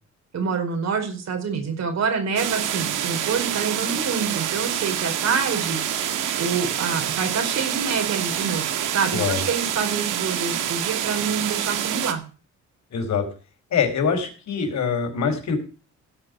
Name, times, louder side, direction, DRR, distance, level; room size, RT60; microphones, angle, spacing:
voice 1, 0.3-6.0 6.4-12.2, right 5 dB, 60° right, 4 dB, 5.1 m, -27 dB
sound 1, 2.4-12.1, right 10 dB, 90° right, 1.9 m, -27 dB
voice 2, 9.1-9.4 12.9-13.3 13.7-15.6, left 6 dB, 65° left, 4 dB, 4.6 m, -24 dB
17.0 x 5.8 x 7.9 m, 0.37 s
cardioid pair, 90°, 30 cm